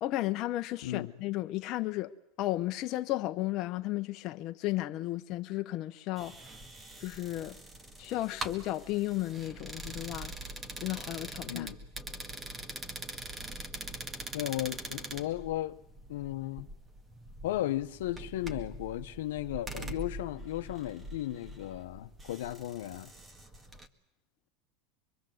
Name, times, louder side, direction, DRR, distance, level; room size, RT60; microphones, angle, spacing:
voice 1, 0.0-6.4 7.0-7.6 8.0-10.3 10.8-11.7, left 16 dB, 50° left, 1.0 m, -34 dB
voice 2, 0.8-1.1 11.5-11.8 14.3-15.8 16.1-16.7 17.4-23.1, left 14 dB, 85° left, 1.0 m, -35 dB
sound 1, 6.2-23.9, right 2 dB, 20° right, 1.8 m, -44 dB
24.5 x 23.5 x 7.9 m
supercardioid pair, 120°, 0 cm